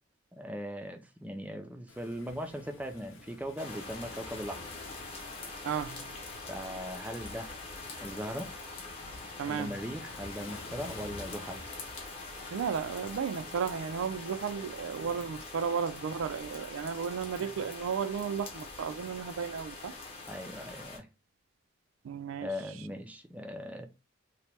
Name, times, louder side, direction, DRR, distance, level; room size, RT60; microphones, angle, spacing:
voice 1, 0.3-4.6 6.4-7.5 8.0-8.5 9.5-11.6 17.4-17.5 20.3-21.1 22.4-23.9, equal, 5° right, 0.4 m, -39 dB
Waves surf, 1.9-15.5, left 3 dB, 80° left, 0.7 m, -52 dB
sound 1, 3.6-21.0, left 3 dB, 30° left, 0.7 m, -44 dB
voice 2, 5.6-6.2 9.4-9.7 12.5-19.9 22.0-22.5, right 7 dB, 85° right, 0.3 m, -34 dB
2.9 x 2.1 x 3.1 m
head